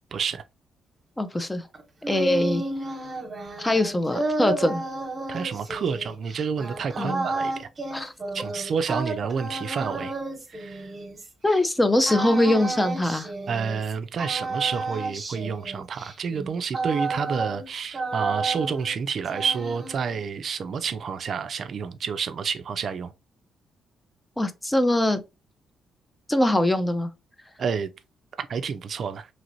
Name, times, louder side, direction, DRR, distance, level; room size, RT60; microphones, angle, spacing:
voice 1, 0.1-0.4 5.3-7.7 8.3-10.1 10.5-10.9 13.5-23.1 27.6-27.9 28.4-29.3, right 6 dB, 55° right, 0.3 m, -29 dB
voice 2, 1.2-1.6 2.1-2.6 3.6-4.8 7.0-7.3 7.9-8.1 11.4-13.3 24.4-25.2 26.3-27.1, left 1 dB, 15° left, 0.4 m, -22 dB
sound 1, 1.7-11.6 12.1-13.9 14.2-17.7 17.9-19.0 19.3-20.2, right 3 dB, 30° right, 1.1 m, -32 dB
3.0 x 2.9 x 2.6 m
cardioid pair, 90°, 0 cm